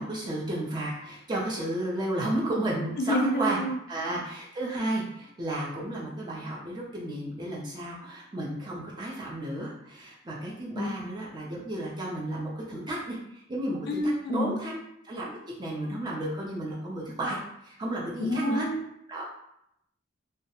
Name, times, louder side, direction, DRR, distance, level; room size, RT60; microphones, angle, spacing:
voice 1, 0.0-3.6 3.9-13.8 14.3-14.8 15.0-17.4 17.6-18.6 19.1-19.2, right 1 dB, 25° right, -5 dB, 0.4 m, -32 dB
voice 2, 3.0-3.8 4.0-4.2 10.7-10.9 13.9-14.6 18.2-18.8, equal, 60° left, 3 dB, 0.4 m, -28 dB
2.2 x 2.0 x 2.8 m, 0.77 s
head